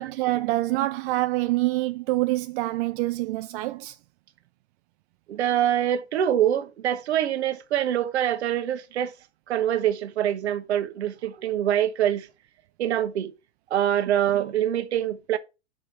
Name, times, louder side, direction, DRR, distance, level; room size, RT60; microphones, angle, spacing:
voice 1, 0.0-4.0, right 18 dB, 50° right, 0.5 m, -26 dB
voice 2, 5.3-9.1 9.5-12.3 12.8-13.3 13.7-15.4, right 11 dB, 75° right, 1.3 m, -25 dB
6.7 x 5.1 x 5.6 m
hypercardioid pair, 105°, 33 cm